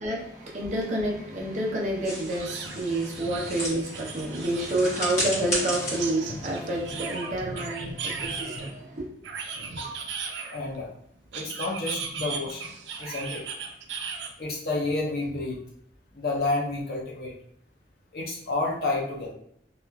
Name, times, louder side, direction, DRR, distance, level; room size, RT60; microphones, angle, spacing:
voice 1, 0.0-9.1, right 1 dB, 40° right, 0.6 m, -29 dB
sound 1, 0.8-0.9 1.3-1.4 2.3-4.9 6.0-8.7 9.2-10.8 11.3-14.3, right 5 dB, 90° right, 0.4 m, -37 dB
sound 2, 2.0-7.3, equal, 40° left, 1.2 m, -34 dB
voice 2, 7.2-8.9 9.5-10.0 10.5-10.9 11.3-13.4 14.4-15.6 16.1-17.3 18.1-19.3, left 2 dB, 60° left, 0.6 m, -31 dB
2.9 x 2.4 x 2.2 m
head